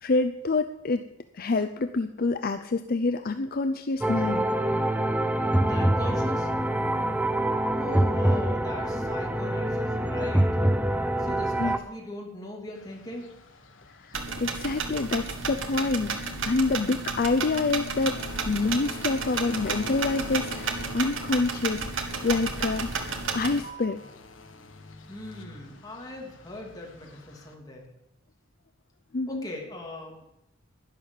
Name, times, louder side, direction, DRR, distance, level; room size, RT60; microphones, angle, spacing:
voice 1, 0.0-1.0 1.3-4.5 11.6-11.7 14.0-18.2 18.5-24.0 29.1-29.5, left 3 dB, 50° left, 9 dB, 0.6 m, -27 dB
sound 1, 4.0-11.8, right 1 dB, 10° right, 0.6 m, -25 dB
voice 2, 5.6-6.5 7.7-10.5 11.2-13.3 25.1-27.9 29.3-30.2, left 1 dB, 20° left, -1 dB, 2.9 m, -39 dB
sound 2, 12.7-27.5, left 2 dB, 75° left, 1.6 m, -46 dB
sound 3, 14.1-23.6, right 4 dB, 80° right, 1.7 m, -32 dB
11.5 x 11.0 x 7.2 m, 0.85 s
head